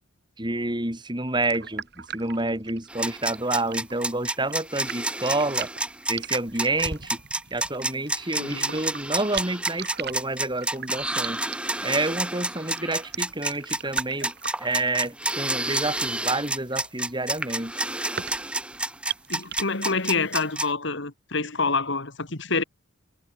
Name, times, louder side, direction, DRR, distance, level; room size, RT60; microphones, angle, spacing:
voice 1, 0.4-5.7 6.1-7.2 7.5-11.4 11.8-14.3 14.6-17.8, right 2 dB, 20° right, 4.0 m, -28 dB
sound 1, 1.4-19.6, right 8 dB, 55° right, 3.6 m, -39 dB
sound 2, 2.9-20.7, right 2 dB, 5° right, 1.2 m, -29 dB
voice 2, 8.4-8.8 19.3-22.6, left 4 dB, 60° left, 2.5 m, -27 dB
head